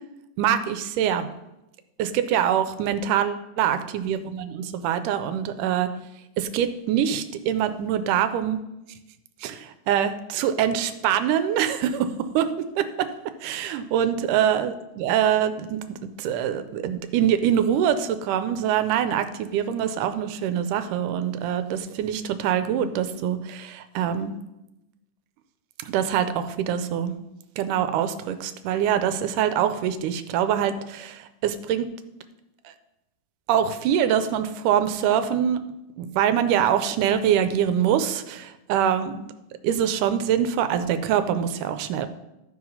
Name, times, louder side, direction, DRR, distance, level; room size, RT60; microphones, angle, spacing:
voice 1, 0.4-1.3 2.0-5.9 6.4-8.6 9.4-12.5 12.8-13.1 13.4-24.3 25.8-27.1 27.6-31.9 33.5-35.6 36.0-39.2 39.6-42.1, right 9 dB, 80° right, 10 dB, 2.2 m, -24 dB
13.0 x 4.9 x 5.4 m, 0.92 s
omnidirectional pair, 3.8 m